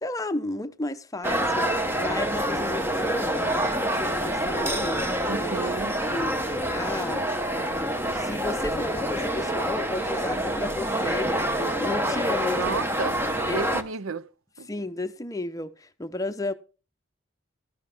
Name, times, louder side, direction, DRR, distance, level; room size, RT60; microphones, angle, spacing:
voice 1, 0.0-5.5 6.1-7.3 8.0-12.8 13.5-13.7 14.7-16.5, left 2 dB, 15° left, 0.8 m, -33 dB
sound 1, 1.2-13.8, right 1 dB, 10° right, 1.0 m, -27 dB
voice 2, 5.3-6.0 12.6-13.2 13.4-14.3 14.6-14.7, right 5 dB, 80° right, 0.6 m, -32 dB
13.0 x 11.5 x 3.5 m
head